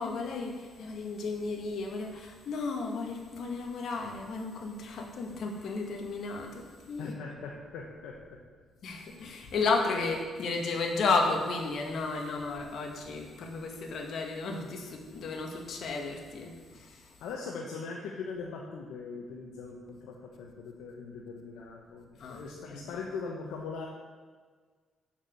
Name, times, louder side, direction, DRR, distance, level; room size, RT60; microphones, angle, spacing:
voice 1, 0.0-7.1 8.8-17.0 22.2-22.4 22.7-23.0, left 3 dB, 65° left, 2 dB, 1.8 m, -33 dB
voice 2, 7.0-8.4 17.2-23.9, left 4 dB, 85° left, -1 dB, 1.2 m, -40 dB
7.3 x 7.1 x 8.0 m, 1.5 s
cardioid pair, 90°, 0 cm